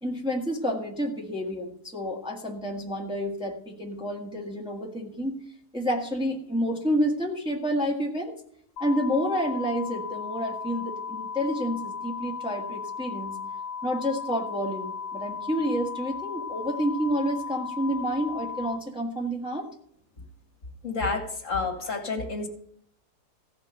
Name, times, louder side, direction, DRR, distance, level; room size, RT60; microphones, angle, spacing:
voice 1, 0.0-5.4 5.7-8.4 8.8-13.4 13.8-19.7, equal, 5° right, -1 dB, 1.6 m, -29 dB
sound 1, 8.8-18.8, left 6 dB, 90° left, 1.5 m, -36 dB
voice 2, 20.8-22.5, left 4 dB, 50° left, 2 dB, 2.2 m, -29 dB
15.5 x 5.2 x 9.1 m, 0.68 s
omnidirectional pair, 1.7 m